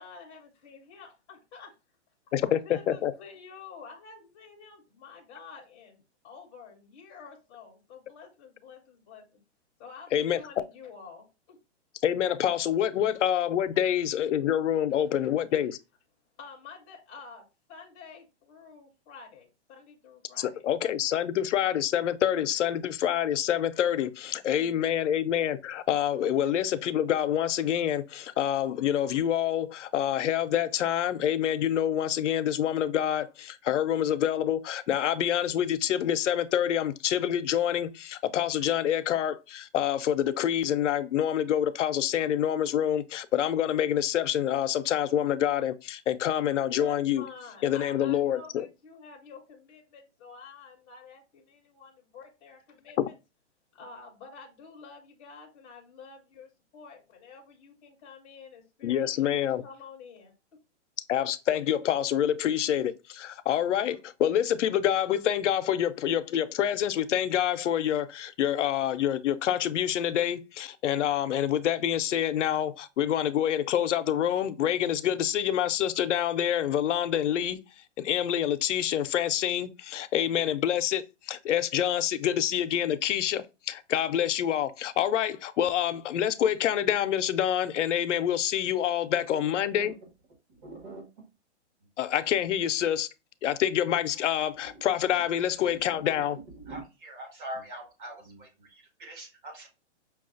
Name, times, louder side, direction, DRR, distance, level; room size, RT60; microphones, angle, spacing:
voice 1, 0.0-1.7 2.4-9.2 9.8-11.6 15.2-15.3 16.4-17.4 17.7-20.6 21.1-21.7 24.5-24.9 46.7-53.0 53.7-60.3, left 5 dB, 10° left, 0.6 m, -49 dB
voice 2, 2.3-3.1 10.1-10.4 12.0-15.8 20.4-47.2 47.6-48.7 53.0-53.1 58.8-59.6 61.1-77.6 78.0-89.9 92.0-93.1 93.4-96.4, left 10 dB, 85° left, 0.5 m, -27 dB
voice 3, 89.3-89.9 90.6-91.0 94.6-94.7 95.9-99.7, right 1 dB, 45° right, 1.7 m, -43 dB
5.7 x 2.3 x 2.5 m
hypercardioid pair, 165°, 35 cm